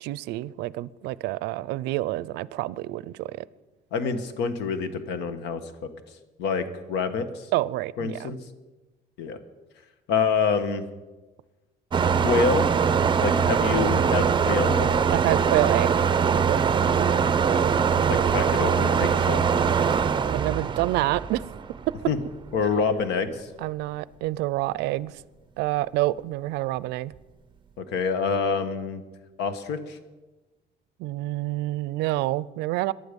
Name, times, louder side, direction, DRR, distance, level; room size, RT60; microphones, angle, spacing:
voice 1, 0.0-3.5 7.5-8.3 15.1-16.1 16.4-17.7 20.3-21.4 23.6-25.2 25.6-27.1 31.0-32.9, right 17 dB, 90° right, 20 dB, 0.5 m, -28 dB
voice 2, 3.9-5.9 6.4-7.5 8.0-8.4 9.2-9.4 10.1-10.8 12.1-12.7 13.2-14.9 17.8-19.4 22.1-22.2 22.5-23.5 27.8-29.0 29.4-30.0, left 5 dB, 85° left, 10 dB, 1.4 m, -27 dB
sound 1, 11.9-22.1, right 6 dB, 30° right, 0.7 m, -22 dB
18.5 x 11.5 x 5.3 m, 1.2 s
cardioid pair, 110°, 17 cm